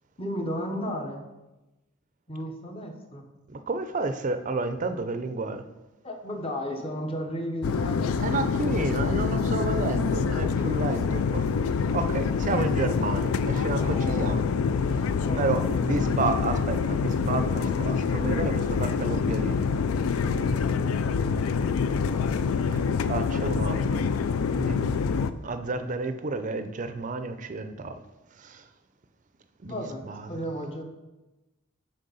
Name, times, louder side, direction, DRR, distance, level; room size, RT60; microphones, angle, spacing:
voice 1, 0.2-1.2 2.3-3.2 6.0-8.1 13.7-14.4 15.2-15.8 29.7-30.8, equal, 25° left, 3 dB, 0.8 m, -34 dB
voice 2, 3.5-5.6 8.2-11.4 11.9-14.4 15.4-19.6 22.7-22.8 23.1-24.0 24.6-24.8 25.4-28.0 28.4-28.6 29.6-30.4, right 3 dB, 35° right, 9 dB, 0.4 m, -31 dB
sound 1, 7.6-25.3, left 5 dB, 80° left, 0.4 m, -26 dB
6.4 x 4.4 x 5.4 m, 1.1 s
head